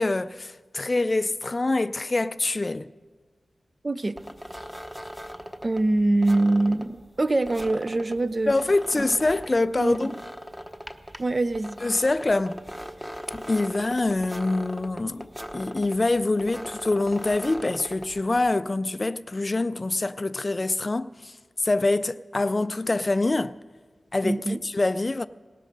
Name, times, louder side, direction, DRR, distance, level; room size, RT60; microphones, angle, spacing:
voice 1, 0.0-2.9 8.5-10.2 11.8-12.6 13.3-23.5 24.1-25.3, left 2 dB, 40° left, 0.4 m, -25 dB
voice 2, 3.8-4.2 5.6-8.5 9.0-9.1 9.8-10.1 11.2-11.8 24.2-24.6, right 2 dB, 40° right, 0.6 m, -24 dB
sound 1, 4.2-18.5, equal, 5° right, 1.0 m, -40 dB
18.0 x 13.0 x 5.3 m
cardioid pair, 55°, 0 cm